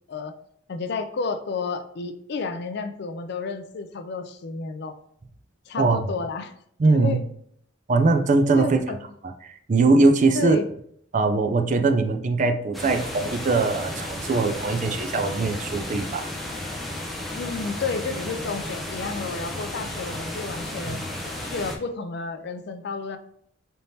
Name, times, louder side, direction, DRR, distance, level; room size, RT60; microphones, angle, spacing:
voice 1, 0.7-5.0 5.7-6.5 6.9-7.2 8.6-9.0 10.3-10.6 17.4-23.2, left 4 dB, 60° left, 8 dB, 0.4 m, -31 dB
voice 2, 6.8-7.2 7.9-8.8 9.4-10.6 11.1-16.3 20.9-21.0, right 3 dB, 40° right, 6 dB, 0.4 m, -21 dB
sound 1, 12.7-21.8, left 1 dB, ahead, 0.6 m, -33 dB
4.2 x 3.5 x 2.7 m, 0.67 s
head